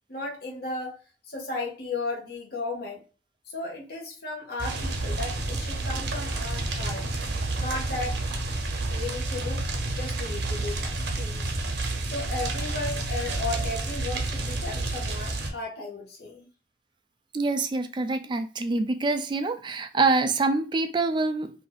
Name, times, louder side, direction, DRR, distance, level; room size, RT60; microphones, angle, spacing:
voice 1, 0.1-3.0 3.5-7.0 7.6-8.2 8.9-11.5 12.0-16.5, left 2 dB, 60° left, -2 dB, 0.9 m, -35 dB
sound 1, 4.6-15.5, right 2 dB, 70° right, 0.8 m, -30 dB
voice 2, 17.3-21.5, right 3 dB, 25° right, 7 dB, 0.3 m, -25 dB
2.8 x 2.4 x 3.9 m, 0.35 s
head